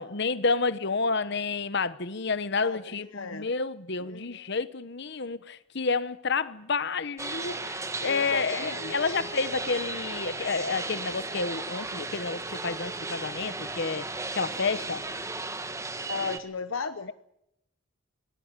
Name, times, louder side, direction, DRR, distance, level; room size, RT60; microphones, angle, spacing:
voice 1, 0.0-14.0 14.3-15.0, left 4 dB, 60° left, 1.1 m, -30 dB
voice 2, 2.6-3.5 4.0-4.5 8.0-9.1 16.1-17.1, left 4 dB, 80° left, 1.0 m, -36 dB
sound 1, 7.2-16.4, right 3 dB, 15° right, 1.4 m, -35 dB
25.5 x 19.5 x 9.0 m
head